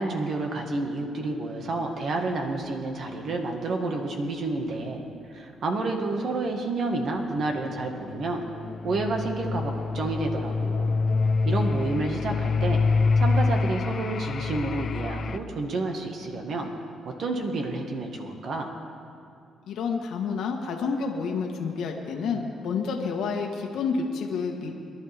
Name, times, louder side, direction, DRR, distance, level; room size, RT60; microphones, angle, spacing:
voice 1, 0.0-5.0 5.3-8.4 8.8-11.0 11.4-12.8 13.2-16.7 17.0-18.7, right 2 dB, 60° right, 3 dB, 1.7 m, -29 dB
sound 1, 7.8-15.4, left 4 dB, 50° left, 0.5 m, -26 dB
voice 2, 19.7-24.7, left 5 dB, 75° left, 2 dB, 1.4 m, -29 dB
24.0 x 11.5 x 3.5 m, 2.5 s
cardioid pair, 90°, 0 cm